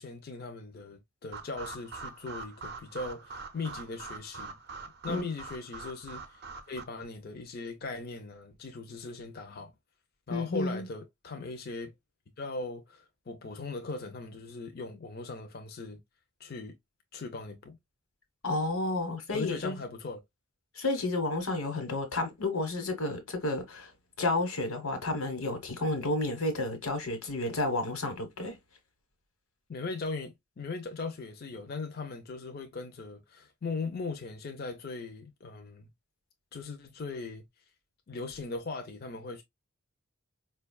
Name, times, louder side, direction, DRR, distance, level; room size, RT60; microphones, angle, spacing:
voice 1, 0.0-4.6 5.0-6.4 6.7-9.7 10.3-11.9 12.4-16.0 16.4-16.8 17.1-17.8 19.3-20.2 29.7-35.9 36.5-37.4 38.1-39.4, left 3 dB, 45° left, 0.5 m, -39 dB
sound 1, 1.3-6.8, right 4 dB, 45° right, 0.5 m, -44 dB
voice 2, 10.3-10.8 18.4-19.7 20.8-23.9 24.2-28.6, left 2 dB, 75° left, 1.1 m, -31 dB
4.9 x 2.3 x 2.3 m
head